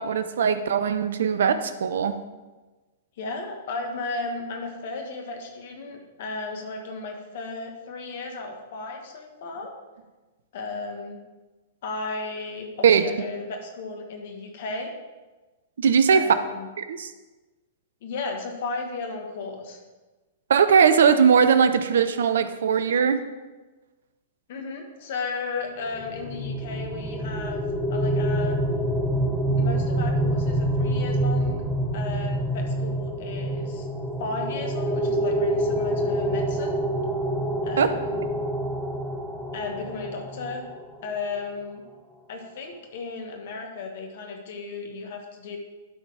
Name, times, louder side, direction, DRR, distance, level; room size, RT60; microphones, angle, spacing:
voice 1, 0.0-2.1 12.8-13.0 15.8-16.2 16.8-17.1 20.5-23.2 37.8-37.9, right 7 dB, 65° right, 11 dB, 0.6 m, -20 dB
voice 2, 3.2-9.7 10.5-11.2 11.8-14.9 16.1-16.7 18.0-19.8 24.5-27.6 27.9-28.6 29.6-31.6 31.9-33.9 34.2-36.7 37.6-38.2 39.5-40.6 41.0-41.8 42.3-45.6, left 3 dB, 55° left, 2 dB, 1.6 m, -34 dB
sound 1, 25.9-40.7, right 1 dB, 5° right, 1.4 m, -26 dB
11.5 x 4.1 x 4.8 m, 1.2 s
figure-of-eight pair, 105°, 0 cm